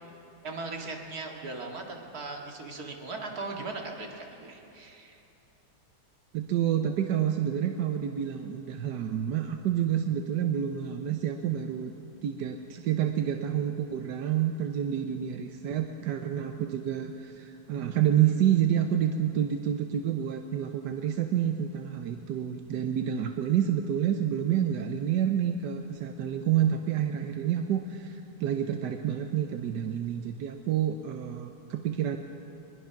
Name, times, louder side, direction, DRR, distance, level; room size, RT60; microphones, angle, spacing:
voice 1, 0.4-5.2, right 3 dB, 65° right, 1 dB, 2.6 m, -38 dB
voice 2, 6.3-11.9 12.2-32.2, right 10 dB, 90° right, 5 dB, 1.5 m, -28 dB
22.5 x 21.0 x 5.9 m, 2.8 s
omnidirectional pair, 1.8 m